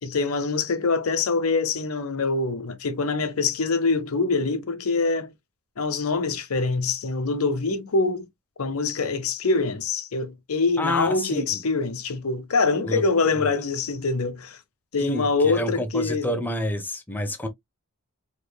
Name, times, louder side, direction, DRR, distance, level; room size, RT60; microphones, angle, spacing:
voice 1, 0.0-5.3 5.8-8.3 8.6-14.6 14.9-16.4, left 4 dB, 80° left, 0.8 m, -24 dB
voice 2, 10.8-11.6 12.8-13.0 13.4-13.5 15.0-17.5, equal, 10° left, 0.7 m, -29 dB
4.8 x 3.1 x 2.2 m
head